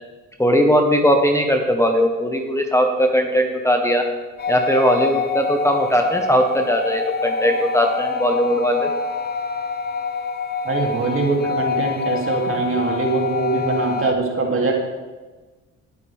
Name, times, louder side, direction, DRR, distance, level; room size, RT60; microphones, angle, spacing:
voice 1, 0.4-4.0 4.5-8.9, equal, 10° left, 2 dB, 1.4 m, -19 dB
sound 1, 4.4-14.1, left 4 dB, 30° left, 0.7 m, -26 dB
voice 2, 10.6-14.7, right 3 dB, 45° right, 0 dB, 3.1 m, -22 dB
18.5 x 8.3 x 3.6 m, 1.2 s
cardioid pair, 90°, 30 cm